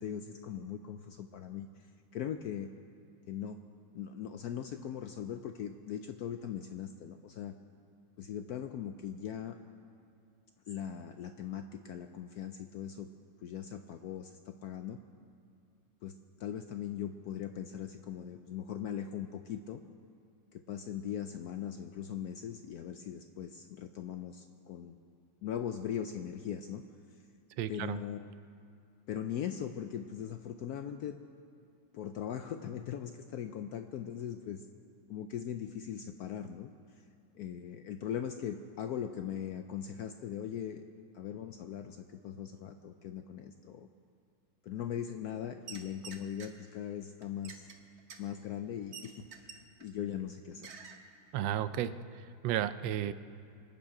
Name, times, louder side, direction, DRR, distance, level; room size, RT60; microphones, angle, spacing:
voice 1, 0.0-1.9 2.1-2.7 3.3-3.6 3.9-7.5 8.2-9.6 10.7-13.1 13.4-15.0 16.0-16.1 16.4-19.8 20.5-25.0 25.4-26.8 27.1-27.2 27.7-28.3 29.1-31.2 31.9-34.7 35.1-36.7 36.9-37.0 37.3-40.8 41.1-43.9 44.6-47.7 48.2-50.8, left 9 dB, 75° left, 7 dB, 0.9 m, -40 dB
voice 2, 27.6-28.0 51.3-53.1, right 11 dB, 80° right, 13 dB, 1.3 m, -33 dB
sound 1, 45.6-46.5 47.2-49.9 50.2-50.3 50.6-51.0 51.4-51.5, right 6 dB, 45° right, 1.0 m, -49 dB
25.5 x 9.0 x 4.9 m, 2.5 s
omnidirectional pair, 2.1 m